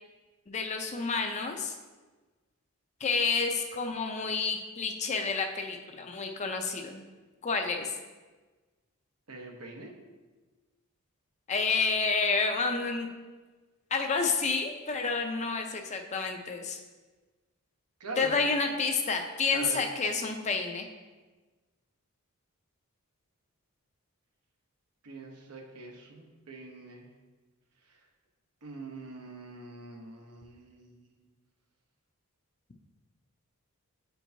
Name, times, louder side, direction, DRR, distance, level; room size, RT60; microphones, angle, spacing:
voice 1, 0.5-1.8 3.0-7.0 7.4-7.9 11.5-13.1 13.9-16.8 18.2-20.9, left 4 dB, 30° left, 4 dB, 0.5 m, -29 dB
voice 2, 9.3-9.9 18.0-18.5 19.5-19.8 25.0-27.1 27.9-28.0 28.6-31.2, right 2 dB, 90° right, 1 dB, 1.0 m, -43 dB
8.9 x 4.5 x 2.7 m, 1.3 s
head